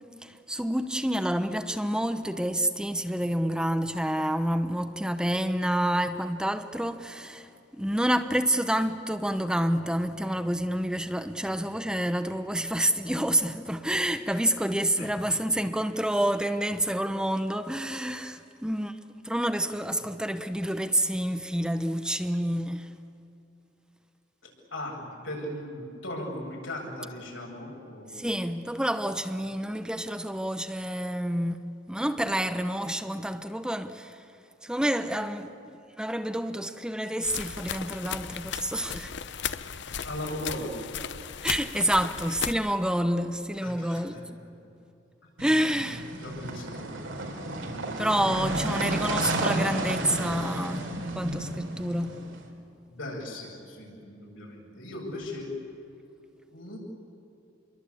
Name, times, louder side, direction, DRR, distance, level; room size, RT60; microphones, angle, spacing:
voice 1, 0.2-19.0 19.2-22.9 28.1-31.6 31.9-34.2 34.6-39.1 41.4-44.2 45.4-46.1 48.0-52.2, right 1 dB, 5° right, 0.9 m, -28 dB
voice 2, 24.7-28.2 40.0-40.7 43.6-44.0 45.2-45.3 46.2-46.9 47.7-48.0 48.7-49.1 52.9-55.5 56.5-56.8, left 1 dB, 85° left, 8.0 m, -38 dB
sound 1, 37.2-42.5, left 7 dB, 65° left, 0.9 m, -36 dB
sound 2, 45.4-52.4, right 2 dB, 90° right, 4.1 m, -32 dB
28.0 x 23.0 x 8.6 m
head